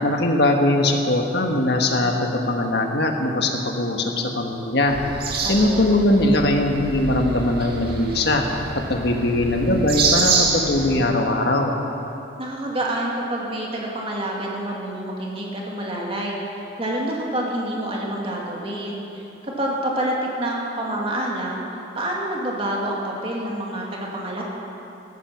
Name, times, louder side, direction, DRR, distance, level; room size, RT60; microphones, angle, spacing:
voice 1, 0.0-5.0 5.5-8.4 8.7-11.8, left 1 dB, 55° left, 3 dB, 1.5 m, -21 dB
sound 1, 4.9-11.0, right 4 dB, 50° right, 2.1 m, -26 dB
voice 2, 5.4-6.0 12.4-21.6 22.0-24.4, right 1 dB, 30° right, -2 dB, 2.3 m, -27 dB
14.5 x 14.0 x 6.0 m, 2.9 s
head